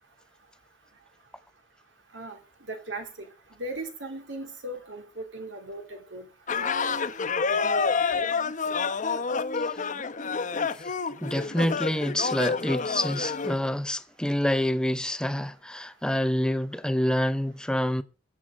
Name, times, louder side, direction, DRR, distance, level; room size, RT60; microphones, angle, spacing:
voice 1, 2.7-3.3 3.6-6.3 6.5-7.1 7.5-8.3, right 2 dB, 85° right, 2.8 m, -38 dB
sound 1, 6.5-13.6, left 5 dB, 45° left, 0.8 m, -28 dB
voice 2, 11.2-18.0, left 1 dB, 5° left, 0.6 m, -27 dB
22.0 x 7.5 x 3.7 m
head